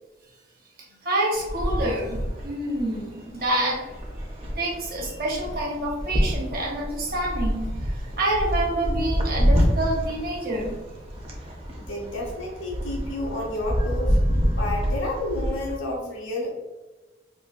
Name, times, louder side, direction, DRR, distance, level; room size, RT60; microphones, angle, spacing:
voice 1, 1.0-3.8 4.6-10.8, right 1 dB, 50° right, -3 dB, 0.9 m, -27 dB
sound 1, 1.3-15.8, equal, 35° right, 0.6 m, -27 dB
voice 2, 11.8-14.2 14.5-16.5, left 1 dB, 85° left, -2 dB, 1.0 m, -30 dB
3.7 x 2.3 x 2.5 m, 1.1 s
head